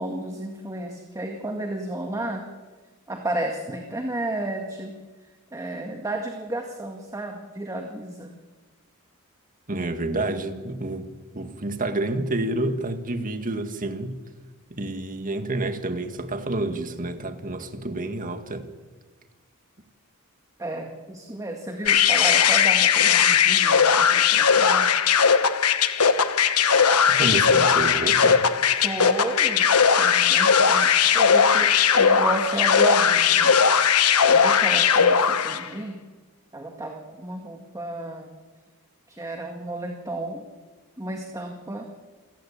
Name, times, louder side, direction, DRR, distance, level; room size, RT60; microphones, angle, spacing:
voice 1, 0.0-2.4 3.1-5.0 5.5-8.3 20.6-24.9 28.8-29.7 30.0-33.6 34.3-36.0 36.5-38.3 39.1-40.4 41.0-41.9, right 2 dB, 15° right, 1.9 m, -32 dB
voice 2, 9.7-11.1 11.3-14.1 14.7-18.7 27.1-28.5, right 2 dB, 40° right, 1.9 m, -29 dB
sound 1, 21.9-35.7, left 7 dB, 85° left, 1.2 m, -19 dB
28.0 x 15.5 x 8.8 m
head